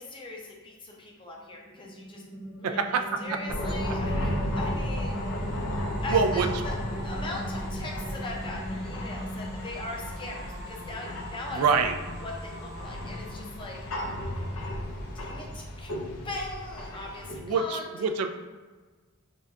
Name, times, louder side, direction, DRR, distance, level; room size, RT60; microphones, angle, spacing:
voice 1, 0.0-2.2 2.6-5.2 6.0-6.7 7.0-11.9 12.2-13.8 15.1-15.9 16.2-17.9, left 2 dB, 20° left, -1 dB, 0.5 m, -40 dB
sound 1, 1.4-14.8, equal, 15° right, 0.7 m, -40 dB
voice 2, 2.6-3.0 3.3-3.4 6.1-6.5 11.5-12.0 17.4-18.3, right 5 dB, 80° right, 7 dB, 0.3 m, -25 dB
sound 2, 3.5-17.4, left 1 dB, 75° left, 0.6 m, -34 dB
3.8 x 2.2 x 3.5 m, 1.3 s
head